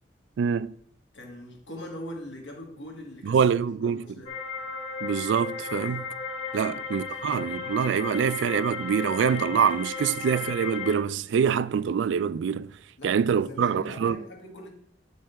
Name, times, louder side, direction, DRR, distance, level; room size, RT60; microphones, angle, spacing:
voice 1, 0.4-0.7 3.2-4.1 5.0-6.1 6.5-12.7 13.0-14.2, right 7 dB, 80° right, 0.3 m, -25 dB
voice 2, 1.1-3.4 3.8-4.3 6.5-6.8 13.0-14.7, left 1 dB, 80° left, 1.8 m, -41 dB
sound 1, 4.3-11.0, left 5 dB, 30° left, 0.9 m, -35 dB
8.3 x 6.5 x 3.4 m
head